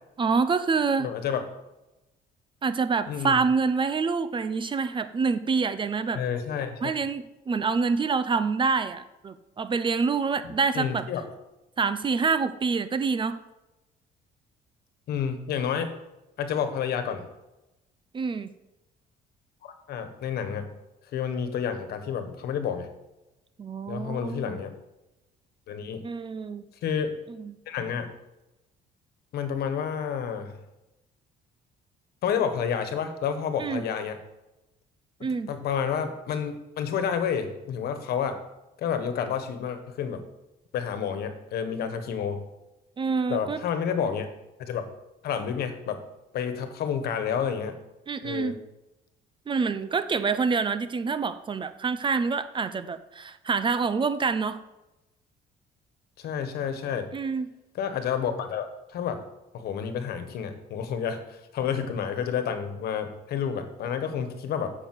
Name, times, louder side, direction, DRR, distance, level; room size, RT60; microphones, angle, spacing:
voice 1, 0.2-1.1 2.6-6.2 6.8-11.0 11.8-13.4 18.1-18.5 23.6-24.6 26.0-26.6 27.4-27.6 33.6-33.8 35.2-35.5 43.0-43.6 48.1-48.6 49.5-54.6 57.1-57.5, right 5 dB, 30° right, 12 dB, 0.7 m, -26 dB
voice 2, 1.0-1.4 3.1-3.4 6.1-7.0 10.7-11.2 15.1-16.0 16.4-17.2 19.6-20.7 21.1-22.9 23.9-24.7 25.7-26.1 26.8-27.2 27.7-28.1 29.3-30.5 32.2-34.2 35.5-38.4 38.8-40.2 40.7-42.4 43.3-44.3 44.6-44.8 45.2-46.0 46.3-47.8 48.2-48.5 56.2-57.1 57.7-59.2 59.5-64.7, left 7 dB, 70° left, 8 dB, 1.5 m, -30 dB
7.2 x 6.9 x 7.8 m, 0.96 s
cardioid pair, 110°, 17 cm